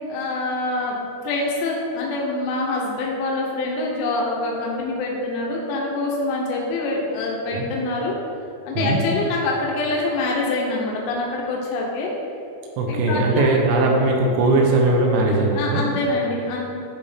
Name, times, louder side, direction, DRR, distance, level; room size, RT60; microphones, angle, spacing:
voice 1, 0.1-8.1 8.7-12.1 12.9-13.5 15.5-16.7, left 2 dB, 85° left, -2 dB, 2.5 m, -25 dB
voice 2, 12.8-15.8, right 2 dB, 85° right, 0 dB, 3.4 m, -19 dB
10.5 x 3.6 x 4.2 m, 2.6 s
omnidirectional pair, 5.8 m